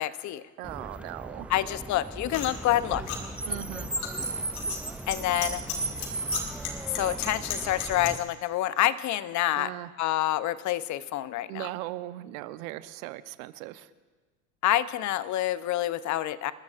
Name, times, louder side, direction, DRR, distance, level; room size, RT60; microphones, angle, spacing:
voice 1, 0.0-0.4 1.5-3.0 5.1-5.6 6.9-9.7 10.0-11.7 14.6-16.5, left 14 dB, 45° left, 15 dB, 0.7 m, -27 dB
Car, 0.6-8.2, right 2 dB, 5° right, 0.4 m, -36 dB
voice 2, 0.6-1.5 3.5-3.9 9.5-9.9 11.5-13.9, right 16 dB, 70° right, 13 dB, 0.8 m, -38 dB
sound 1, 2.3-8.1, left 6 dB, 85° left, 2.3 m, -37 dB
28.0 x 13.5 x 2.5 m, 1.4 s
hypercardioid pair, 85°, 42 cm